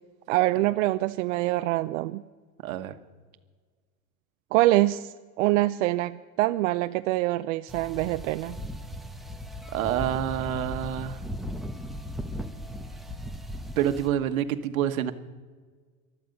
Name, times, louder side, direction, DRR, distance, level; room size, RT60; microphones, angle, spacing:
voice 1, 0.3-2.2 4.5-8.6, right 17 dB, 65° right, 10 dB, 0.6 m, -25 dB
voice 2, 2.6-2.9 9.7-11.2 13.8-15.1, right 10 dB, 80° right, 9 dB, 1.3 m, -27 dB
sound 1, 7.7-14.1, equal, ahead, 0.9 m, -37 dB
19.5 x 12.0 x 5.4 m, 1.5 s
supercardioid pair, 125°, 41 cm